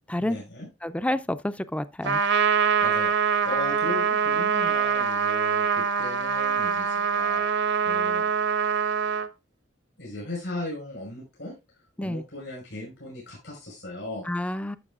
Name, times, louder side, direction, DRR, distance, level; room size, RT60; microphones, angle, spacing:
voice 1, 0.2-0.7 2.8-7.4 7.8-8.3 10.0-11.6 12.0-14.3, left 2 dB, 75° left, 5.4 m, -37 dB
voice 2, 0.8-2.2 12.0-12.2 14.3-14.8, left 1 dB, 5° left, 0.4 m, -29 dB
Trumpet, 2.0-9.3, right 6 dB, 65° right, 0.8 m, -24 dB
12.0 x 6.7 x 2.4 m
head